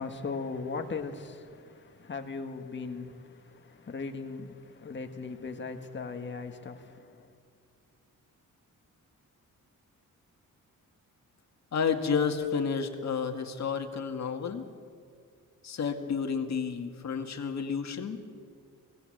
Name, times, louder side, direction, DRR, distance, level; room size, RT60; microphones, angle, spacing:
voice 1, 0.0-7.3, left 4 dB, 35° left, 1.8 m, -38 dB
voice 2, 11.7-14.6 15.6-18.2, left 6 dB, 55° left, 2.1 m, -31 dB
25.5 x 18.5 x 8.0 m
wide cardioid pair, 150°, 33 cm